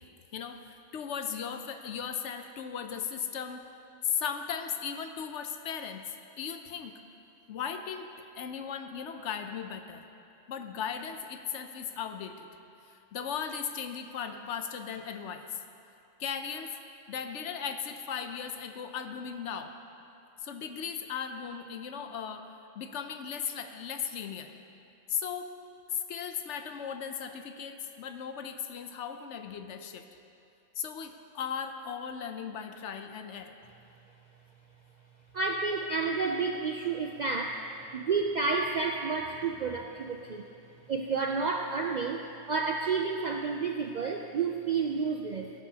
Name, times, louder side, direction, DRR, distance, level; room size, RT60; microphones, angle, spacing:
voice 1, 0.9-3.6 4.0-6.0 6.4-6.9 7.5-8.1 8.4-10.0 10.5-12.5 13.1-15.6 16.2-16.7 17.1-19.7 20.4-22.5 22.7-24.5 25.1-25.5 25.9-30.1 30.8-33.5, left 7 dB, 70° left, 7 dB, 0.9 m, -37 dB
voice 2, 35.3-37.7 37.9-40.4 40.9-45.5, right 4 dB, 75° right, 3 dB, 0.4 m, -30 dB
17.5 x 9.9 x 2.8 m, 2.8 s
omnidirectional pair, 1.3 m